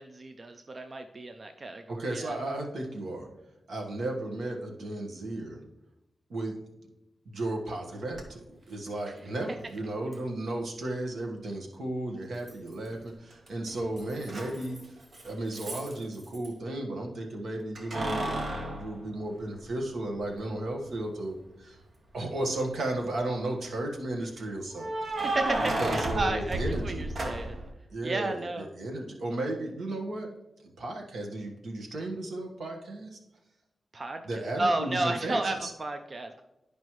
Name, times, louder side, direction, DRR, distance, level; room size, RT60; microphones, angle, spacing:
voice 1, 0.0-2.3 25.2-27.6 28.0-28.7 33.9-34.2 34.6-36.4, right 2 dB, 30° right, 6 dB, 0.4 m, -32 dB
voice 2, 1.9-3.3 3.7-5.6 6.3-6.6 7.2-14.8 15.2-21.8 22.1-24.9 25.8-27.0 27.9-30.3 30.6-33.2 34.2-35.7, right 1 dB, 75° right, 1 dB, 1.3 m, -34 dB
Keys jangling, 8.1-8.2 10.1-10.2 12.5-13.0 13.3-16.5 17.8-19.9 20.4-20.5 22.2-22.8 24.7-27.7, right 1 dB, 45° right, 1.0 m, -33 dB
11.0 x 5.2 x 3.1 m, 0.94 s
wide cardioid pair, 175°, 0 cm